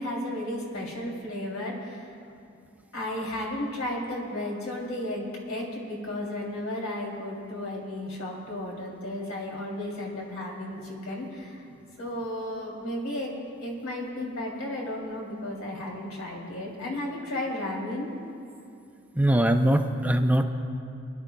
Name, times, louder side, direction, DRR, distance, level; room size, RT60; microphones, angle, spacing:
voice 1, 0.0-2.1 2.9-11.6 12.0-18.1, left 1 dB, 85° left, -2 dB, 2.9 m, -34 dB
voice 2, 19.2-20.4, right 1 dB, 5° right, 5 dB, 0.5 m, -21 dB
26.5 x 12.0 x 2.3 m, 2.6 s
head